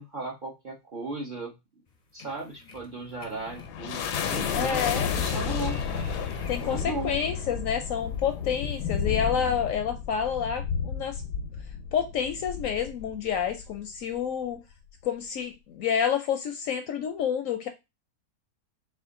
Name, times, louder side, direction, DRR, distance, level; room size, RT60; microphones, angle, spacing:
voice 1, 0.0-1.6 2.1-5.8 6.6-7.2, right 2 dB, 45° right, 0 dB, 0.7 m, -36 dB
sound 1, 1.9-7.3 7.8-9.4, left 2 dB, 50° left, 0.5 m, -44 dB
sound 2, 3.0-13.8, left 7 dB, 90° left, 1.2 m, -32 dB
voice 2, 4.5-5.1 6.5-11.2 11.9-14.6 15.0-17.7, left 8 dB, 70° left, 6 dB, 0.8 m, -29 dB
4.3 x 2.5 x 3.7 m, 0.23 s
omnidirectional pair, 1.7 m